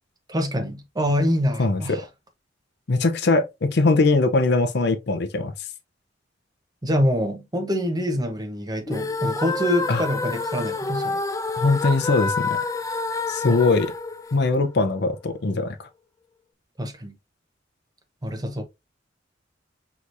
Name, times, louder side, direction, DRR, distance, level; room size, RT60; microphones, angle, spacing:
voice 1, 0.3-2.0 6.8-11.2 13.5-13.6 16.8-17.2 18.2-18.6, equal, 20° right, 0.8 m, -25 dB
voice 2, 1.6-2.0 2.9-5.5 9.9-10.0 11.6-12.6 13.3-13.9 14.3-15.9, left 3 dB, 60° left, 0.6 m, -21 dB
sound 1, 8.9-15.0, left 3 dB, 15° left, 0.3 m, -28 dB
4.7 x 3.0 x 2.5 m
head